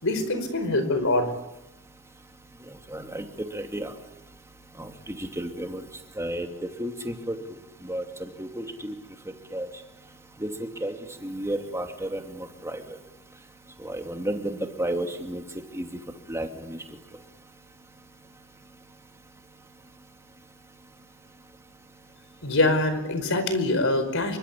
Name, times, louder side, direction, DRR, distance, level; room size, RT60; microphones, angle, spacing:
voice 1, 0.0-1.3 22.4-24.4, left 2 dB, 65° left, 11 dB, 5.0 m, -24 dB
voice 2, 2.9-3.2 3.5-3.9 4.8-5.8 6.2-7.4 7.8-8.9 9.5-9.7 10.4-10.9 11.2-13.0 13.8-15.4 15.7-16.0 16.3-16.8, right 1 dB, 15° right, 4 dB, 2.7 m, -32 dB
27.5 x 24.0 x 8.6 m, 0.98 s
head